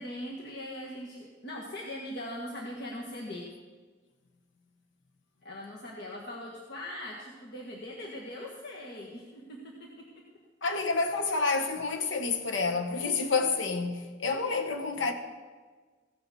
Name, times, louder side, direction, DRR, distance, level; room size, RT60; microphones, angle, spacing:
voice 1, 0.0-3.5 5.4-10.2, left 1 dB, 60° left, 1.5 m, -41 dB
voice 2, 10.6-15.1, left 4 dB, 80° left, 1.1 m, -29 dB
16.0 x 7.0 x 7.0 m
head